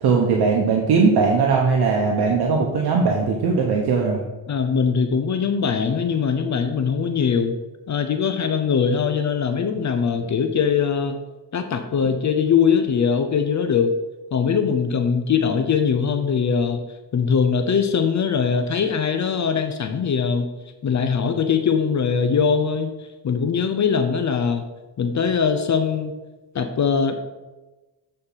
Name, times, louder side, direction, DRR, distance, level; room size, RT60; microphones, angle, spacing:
voice 1, 0.0-4.2, right 4 dB, 75° right, 0 dB, 1.1 m, -19 dB
voice 2, 4.5-7.6 7.9-11.2 11.5-13.9 14.3-16.8 17.1-20.5 20.8-22.9 23.2-24.6 25.0-26.1 26.5-27.2, left 6 dB, 45° left, 7 dB, 0.7 m, -21 dB
8.0 x 4.3 x 5.6 m, 1.1 s
cardioid pair, 100°, 39 cm